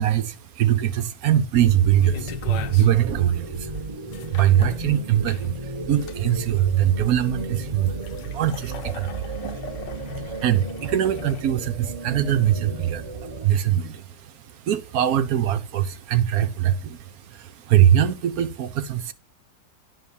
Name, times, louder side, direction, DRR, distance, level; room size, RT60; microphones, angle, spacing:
voice 1, 0.0-3.8 4.3-19.1, right 11 dB, 65° right, 1.0 m, -22 dB
sound 1, 1.5-13.5, right 2 dB, 25° right, 0.9 m, -34 dB
sound 2, 2.0-11.4, left 6 dB, 75° left, 1.5 m, -41 dB
11.0 x 3.8 x 6.9 m
omnidirectional pair, 2.0 m